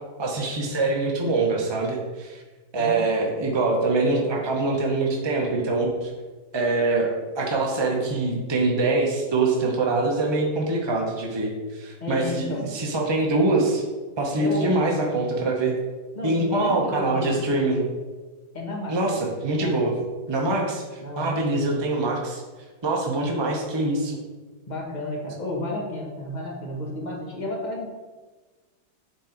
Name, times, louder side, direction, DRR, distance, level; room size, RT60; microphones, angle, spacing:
voice 1, 0.2-2.4 2.7-6.1 6.5-7.1 7.4-13.8 14.2-15.7 16.2-17.8 18.9-19.9 20.3-22.4 22.8-24.2, right 2 dB, 40° right, -1 dB, 0.4 m, -24 dB
voice 2, 2.7-3.1 12.0-12.7 14.4-14.9 16.1-17.4 18.5-19.0 19.5-19.8 21.0-21.3 24.7-27.9, left 1 dB, 25° left, -2 dB, 1.2 m, -32 dB
8.1 x 3.8 x 4.5 m, 1.3 s
omnidirectional pair, 2.1 m